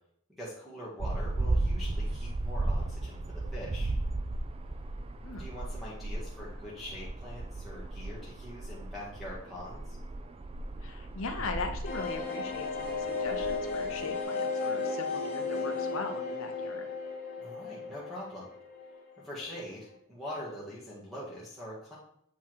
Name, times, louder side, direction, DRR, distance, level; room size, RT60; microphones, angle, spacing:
voice 1, 0.4-3.9 5.4-10.0 17.4-18.5 19.2-22.0, equal, ahead, -7 dB, 1.6 m, -43 dB
sound 1, 1.0-14.2, right 2 dB, 25° right, 0.4 m, -35 dB
voice 2, 10.8-16.9, left 3 dB, 65° left, 4 dB, 0.7 m, -39 dB
sound 2, 11.8-19.3 19.6-19.7 19.9-20.0, left 4 dB, 30° left, 1.6 m, -34 dB
8.1 x 3.6 x 4.6 m, 0.69 s
head